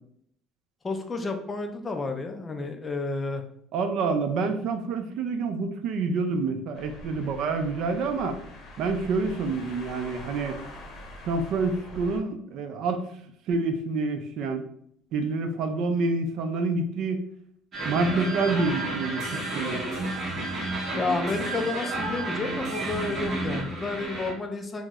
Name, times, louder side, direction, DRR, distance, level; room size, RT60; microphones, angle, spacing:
voice 1, 0.8-3.4 21.0-24.9, left 3 dB, 20° left, 5 dB, 0.3 m, -31 dB
voice 2, 3.7-8.4 8.8-10.6 11.2-13.0 13.5-14.6 15.1-17.2 17.9-19.8, right 3 dB, 55° right, 7 dB, 0.4 m, -27 dB
sound 1, 6.7-12.2, left 2 dB, 40° left, 0.7 m, -44 dB
sound 2, 17.7-24.3, right 2 dB, 30° right, 1.2 m, -31 dB
3.0 x 2.0 x 3.5 m, 0.67 s
cardioid pair, 150°, 0 cm